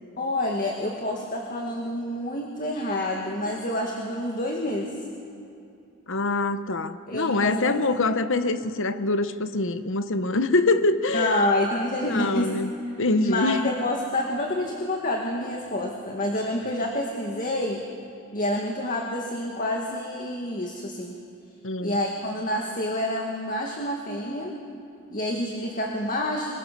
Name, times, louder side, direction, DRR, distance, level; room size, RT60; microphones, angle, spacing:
voice 1, 0.2-4.9 7.1-8.0 11.1-12.5 13.2-17.8 18.3-21.1 21.8-24.5 25.1-26.5, left 1 dB, 35° left, 1 dB, 2.1 m, -28 dB
voice 2, 6.1-11.5 12.1-12.7 13.0-13.6 21.6-22.0, left 2 dB, 55° left, 11 dB, 0.9 m, -24 dB
26.5 x 22.5 x 6.8 m, 2.6 s
head